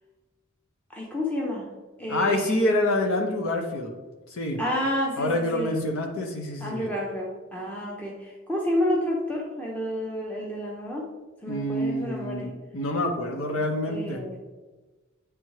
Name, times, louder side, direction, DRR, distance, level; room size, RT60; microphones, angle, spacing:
voice 1, 0.9-1.7 2.0-2.7 4.6-5.7 6.6-11.1 11.4-12.5 13.9-14.4, equal, 5° left, -2 dB, 0.6 m, -30 dB
voice 2, 2.1-4.0 4.3-4.6 5.2-6.9 11.5-14.3, left 1 dB, 85° left, 2 dB, 0.8 m, -27 dB
8.7 x 3.5 x 3.1 m, 1.2 s
head